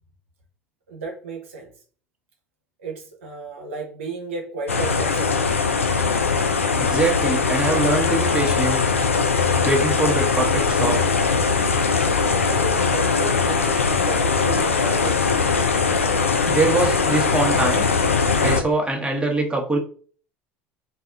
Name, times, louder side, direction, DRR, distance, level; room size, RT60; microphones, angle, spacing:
voice 1, 0.9-1.7 2.8-5.5 12.4-15.3, right 3 dB, 75° right, 1 dB, 0.8 m, -33 dB
sound 1, 4.7-18.6, left 5 dB, 90° left, 0.4 m, -20 dB
voice 2, 6.8-8.8 9.6-11.0 16.4-17.9 18.4-19.8, right 3 dB, 15° right, 1 dB, 1.3 m, -23 dB
4.1 x 2.4 x 3.7 m, 0.43 s
hypercardioid pair, 70°, 7 cm